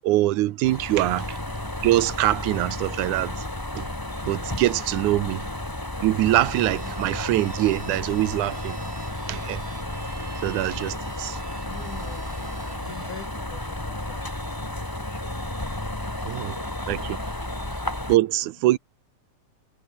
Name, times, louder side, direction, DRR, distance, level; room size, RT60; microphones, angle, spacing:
voice 1, 0.0-1.3 1.8-3.3 3.8-3.9 4.3-5.4 6.0-8.8 9.3-9.6 10.4-11.4 16.3-16.5 16.9-17.2 18.1-18.8, right 16 dB, 85° right, 2.3 m, -23 dB
sound 1, 0.6-18.2, left 1 dB, 10° left, 1.9 m, -32 dB
voice 2, 1.0-1.4 5.2-5.6 6.8-7.1 11.2-15.5 16.2-17.0, left 7 dB, 85° left, 4.2 m, -46 dB
sound 2, 6.2-13.3, right 5 dB, 35° right, 2.7 m, -45 dB
omnidirectional pair, 3.4 m